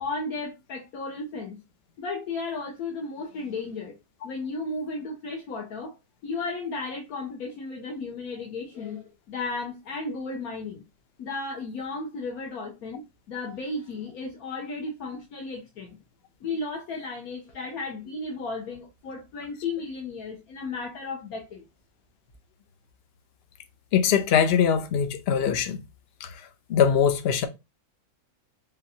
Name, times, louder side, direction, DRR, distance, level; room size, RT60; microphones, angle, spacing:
voice 1, 0.0-1.6 2.0-3.9 4.2-6.0 6.2-10.8 11.2-13.0 13.3-16.0 16.4-21.6, left 3 dB, 80° left, 1.5 m, -34 dB
voice 2, 23.9-25.8 26.2-27.5, left 8 dB, 55° left, 0.8 m, -22 dB
3.9 x 3.7 x 2.7 m
omnidirectional pair, 1.6 m